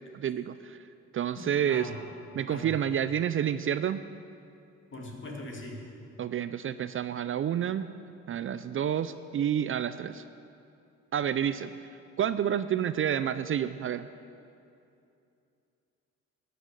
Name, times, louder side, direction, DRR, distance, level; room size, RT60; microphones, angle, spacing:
voice 1, 0.1-0.8 1.1-1.9 2.3-4.0 6.2-7.9 8.3-10.2 11.1-11.7 12.2-14.1, right 9 dB, 45° right, 13 dB, 0.4 m, -29 dB
voice 2, 1.4-2.0 2.5-2.8 4.9-5.8, left 1 dB, 40° left, 0 dB, 2.4 m, -40 dB
12.0 x 6.5 x 8.9 m, 2.6 s
cardioid pair, 90°, 30 cm